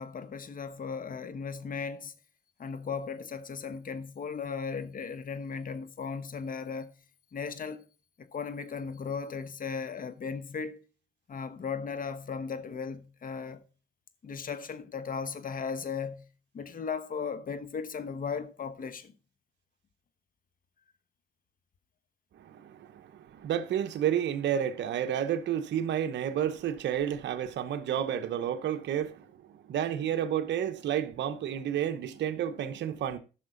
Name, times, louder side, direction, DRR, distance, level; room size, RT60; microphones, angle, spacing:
voice 1, 0.0-2.1 2.6-6.9 7.3-7.9 8.2-10.8 11.3-13.6 14.2-16.3 16.5-19.1, left 5 dB, 45° left, 1.2 m, -36 dB
voice 2, 22.4-29.3 29.5-33.2, right 9 dB, 70° right, 0.8 m, -31 dB
14.5 x 5.8 x 3.8 m
cardioid pair, 80°, 19 cm